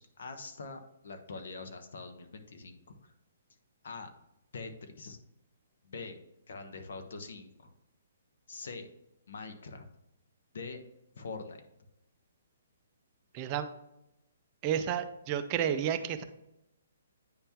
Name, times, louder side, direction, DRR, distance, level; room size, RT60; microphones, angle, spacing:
voice 1, 0.0-3.1 3.8-4.1 4.5-5.2 5.8-6.2 6.5-7.7 8.5-8.9 9.3-9.9 10.5-10.8 11.2-11.6, left 4 dB, 65° left, 6 dB, 1.0 m, -44 dB
voice 2, 13.3-13.7 14.6-16.2, right 9 dB, 25° right, 9 dB, 0.5 m, -31 dB
9.7 x 3.6 x 2.9 m, 0.86 s
hypercardioid pair, 160°, 0 cm